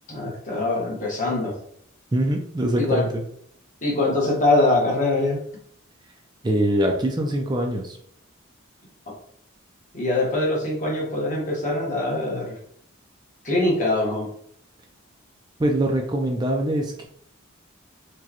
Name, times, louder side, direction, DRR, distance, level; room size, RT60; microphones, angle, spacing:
voice 1, 0.1-1.5 2.8-3.1 3.8-5.4 9.9-12.6 13.4-14.3, left 2 dB, 40° left, -3 dB, 1.2 m, -23 dB
voice 2, 2.1-3.2 6.4-8.0 15.6-17.1, right 1 dB, 20° right, 2 dB, 0.3 m, -23 dB
4.6 x 2.2 x 2.9 m, 0.65 s
head